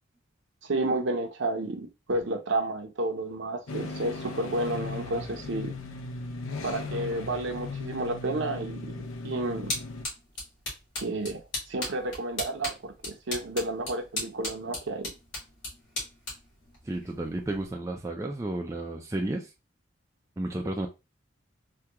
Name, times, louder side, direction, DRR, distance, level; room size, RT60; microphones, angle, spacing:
voice 1, 0.6-5.8 6.6-9.7 11.0-11.4 11.7-15.1, right 2 dB, 60° right, 0.6 m, -31 dB
sound 1, 3.7-10.0, left 3 dB, 80° left, 0.5 m, -37 dB
sound 2, 9.0-17.7, left 2 dB, 60° left, 1.9 m, -38 dB
voice 2, 16.8-19.5 20.4-20.9, right 1 dB, 15° right, 0.3 m, -32 dB
3.5 x 2.2 x 2.8 m
head